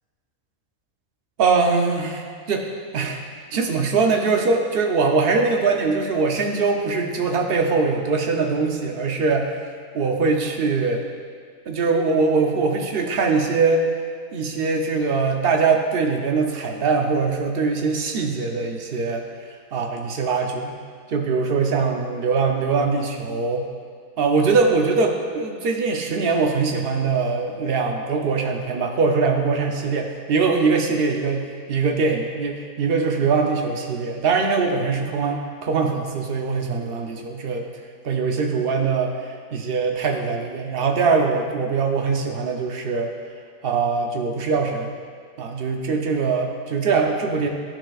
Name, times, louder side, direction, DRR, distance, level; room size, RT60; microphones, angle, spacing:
voice 1, 1.4-2.7 2.9-3.2 3.5-9.5 9.9-11.0 11.7-13.9 14.3-19.3 19.7-20.8 21.1-23.7 24.2-31.4 31.7-37.6 38.0-39.1 39.5-43.1 43.6-44.9 45.4-47.5, right 4 dB, 55° right, 3 dB, 0.7 m, -22 dB
11.5 x 5.8 x 2.4 m, 2.1 s
omnidirectional pair, 1.6 m